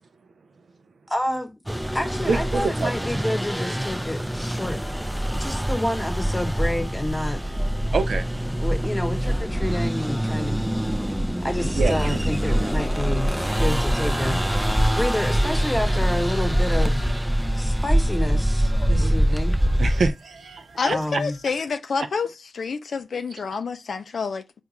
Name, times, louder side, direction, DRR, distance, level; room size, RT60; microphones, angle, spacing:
voice 1, 1.1-1.5 1.9-4.8 5.3-7.4 8.6-10.6 11.4-17.0 17.6-19.6 20.9-21.4, left 1 dB, 15° left, 1.0 m, -29 dB
sound 1, 1.7-20.1, equal, 5° right, 0.4 m, -24 dB
voice 2, 2.3-3.0 7.9-8.3 11.7-12.2 12.6-12.7 18.9-19.3 19.8-21.0, right 4 dB, 80° right, 0.4 m, -26 dB
sound 2, 13.4-21.7, right 3 dB, 60° right, 1.1 m, -48 dB
voice 3, 20.8-22.3 22.5-24.6, left 5 dB, 80° left, 0.3 m, -28 dB
3.6 x 2.3 x 3.0 m
cardioid pair, 45°, 0 cm